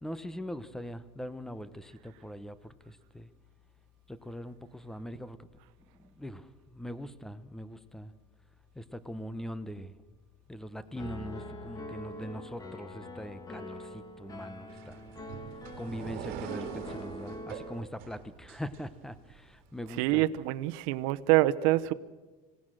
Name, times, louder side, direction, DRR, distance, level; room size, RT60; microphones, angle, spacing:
voice 1, 0.0-3.3 4.1-5.4 6.0-8.1 8.7-9.9 10.5-15.0 15.8-20.2, equal, 5° left, 14 dB, 1.0 m, -42 dB
Piano, 11.0-17.8, left 1 dB, 20° left, 2.1 m, -44 dB
sound 1, 14.7-19.4, right 9 dB, 65° right, 2.4 m, -43 dB
voice 2, 20.0-21.9, right 16 dB, 80° right, 12 dB, 0.9 m, -26 dB
26.0 x 18.0 x 6.5 m, 1.3 s
cardioid pair, 140°, 17 cm